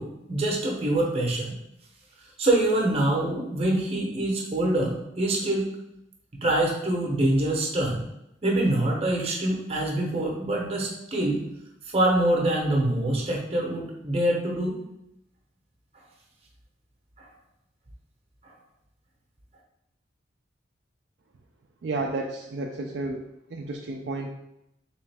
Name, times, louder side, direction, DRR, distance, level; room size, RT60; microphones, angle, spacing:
voice 1, 0.0-1.5 2.4-5.7 6.4-8.0 8.4-11.4 11.9-14.7 17.2-17.3, right 1 dB, 30° right, -1 dB, 0.8 m, -25 dB
voice 2, 21.8-23.2 23.5-24.3, right 2 dB, 60° right, 1 dB, 0.4 m, -31 dB
3.5 x 3.0 x 3.3 m, 0.83 s
head